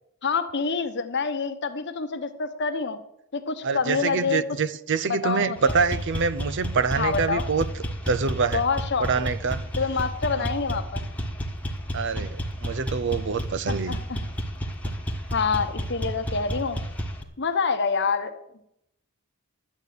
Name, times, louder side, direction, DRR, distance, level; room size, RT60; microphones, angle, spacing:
voice 1, 0.2-3.0 3.3-4.4 5.1-5.8 7.0-7.4 8.5-9.3 9.8-11.0 13.7-14.2 15.3-16.8 17.4-18.6, left 5 dB, 50° left, 1.0 m, -27 dB
voice 2, 3.6-7.7 8.1-8.6 9.0-9.6 11.9-14.0, right 5 dB, 55° right, 0.5 m, -25 dB
sound 1, 5.6-17.2, equal, 5° left, 1.3 m, -31 dB
11.5 x 8.1 x 6.6 m
head